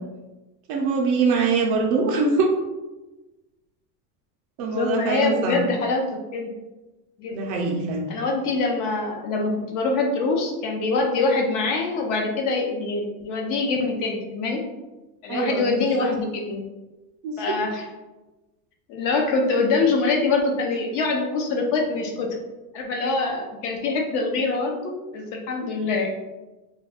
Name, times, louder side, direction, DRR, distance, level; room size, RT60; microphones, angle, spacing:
voice 1, 0.7-2.5 4.6-5.6 7.3-8.1 15.3-16.1 17.2-17.4, right 4 dB, 40° right, 0 dB, 0.4 m, -23 dB
voice 2, 4.6-6.1 6.3-6.5 7.2-7.4 8.1-14.6 15.2-16.6 17.4-17.9 18.9-22.4 22.7-26.1, left 3 dB, 40° left, 1 dB, 0.5 m, -24 dB
2.4 x 2.2 x 3.4 m, 1.1 s
supercardioid pair, 125°, 50 cm